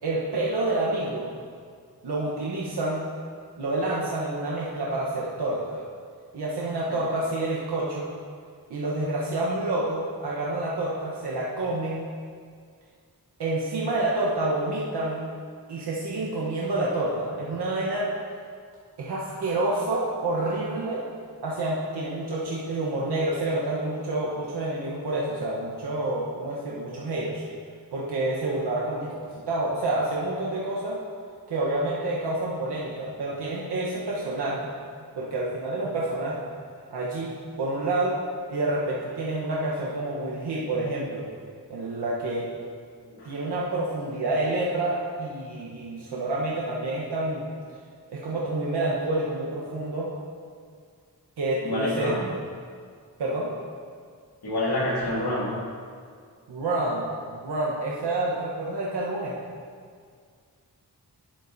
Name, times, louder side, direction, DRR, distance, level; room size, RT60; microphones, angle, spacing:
voice 1, 0.0-1.3 2.0-3.1 3.6-5.8 6.3-8.1 8.7-12.1 13.4-15.4 15.7-18.1 19.0-21.1 21.4-27.4 27.9-29.2 29.5-31.0 31.5-34.7 35.2-36.4 36.9-37.3 37.6-38.2 38.5-41.3 41.7-42.5 43.2-47.5 48.1-50.1 51.4-52.2 53.2-53.5 56.5-57.0 57.3-59.4, right 2 dB, 90° right, -5 dB, 1.0 m, -28 dB
voice 2, 51.6-52.3 54.4-55.5, left 1 dB, 85° left, -5 dB, 2.2 m, -27 dB
11.0 x 7.4 x 2.6 m, 2.1 s
cardioid pair, 45°, 38 cm